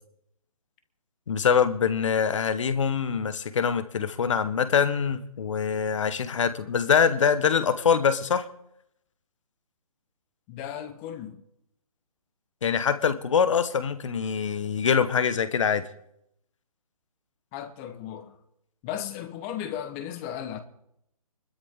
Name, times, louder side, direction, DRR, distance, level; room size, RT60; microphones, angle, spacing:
voice 1, 1.3-8.5 12.6-15.8, left 7 dB, 55° left, 1.4 m, -24 dB
voice 2, 10.5-11.4 17.5-18.4 18.8-20.6, left 10 dB, 20° left, 1.2 m, -35 dB
24.5 x 13.0 x 3.8 m
figure-of-eight pair, 145°, 19 cm